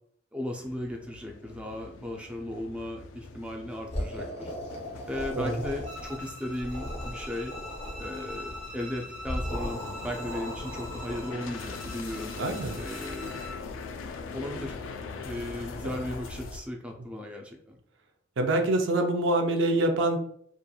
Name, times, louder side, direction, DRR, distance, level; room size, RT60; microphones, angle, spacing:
voice 1, 0.3-4.5 5.1-7.5 8.0-12.3 12.8-13.5 14.3-14.8 15.2-17.8, left 1 dB, 5° right, 1 dB, 0.3 m, -36 dB
sound 1, 0.6-16.6, left 4 dB, 85° left, 0.3 m, -42 dB
sound 2, 3.9-6.2 6.5-8.6 9.2-11.5, equal, 35° left, 0.6 m, -37 dB
Bowed string instrument, 5.8-13.6, left 1 dB, 40° right, 0.9 m, -44 dB
voice 2, 12.4-12.8 18.4-20.2, right 2 dB, 75° right, 5 dB, 0.4 m, -25 dB
2.8 x 2.4 x 2.2 m, 0.64 s
head